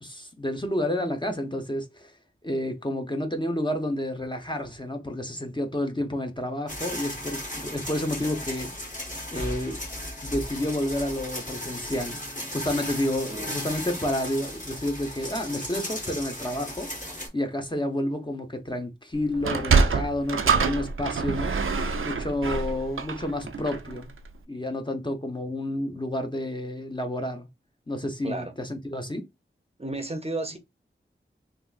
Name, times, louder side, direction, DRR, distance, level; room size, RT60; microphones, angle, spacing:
voice 1, 0.0-2.1 2.4-8.7 9.3-9.8 10.2-12.2 12.5-16.9 17.3-21.5 22.0-24.1 24.5-27.5 27.9-29.2, left 1 dB, 20° left, 0.7 m, -30 dB
sound 1, 6.7-17.3, left 1 dB, 40° left, 1.4 m, -36 dB
voice 2, 13.3-13.6 28.2-28.5 29.8-30.6, right 2 dB, 30° right, 0.6 m, -33 dB
Sliding door, 19.3-24.0, right 5 dB, 80° right, 0.4 m, -25 dB
3.5 x 2.5 x 2.4 m
wide cardioid pair, 55°, 21 cm